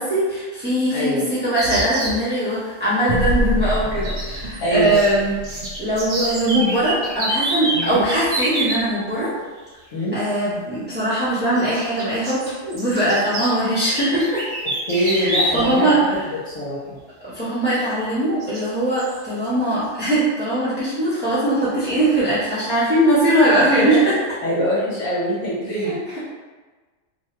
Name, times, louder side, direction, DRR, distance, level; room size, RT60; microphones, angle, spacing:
voice 1, 0.0-5.3 5.8-9.3 10.1-14.4 14.9-16.2 17.3-24.1 25.8-26.2, right 1 dB, 10° right, -12 dB, 0.9 m, -21 dB
voice 2, 0.9-1.2 4.6-5.0 7.7-8.0 9.9-10.1 14.9-15.9 16.5-17.0 23.7-24.0 24.4-26.2, equal, 70° left, -7 dB, 1.2 m, -23 dB
sound 1, 1.6-2.2 4.0-5.1 5.4-8.8 10.2-10.3 11.5-15.8 16.1-16.2 17.7-17.8 18.4-18.6 19.0-19.2, right 1 dB, 55° right, 1.1 m, -27 dB
sound 2, 3.1-7.9, equal, 80° right, 0.4 m, -28 dB
2.7 x 2.2 x 3.0 m, 1.3 s
omnidirectional pair, 1.4 m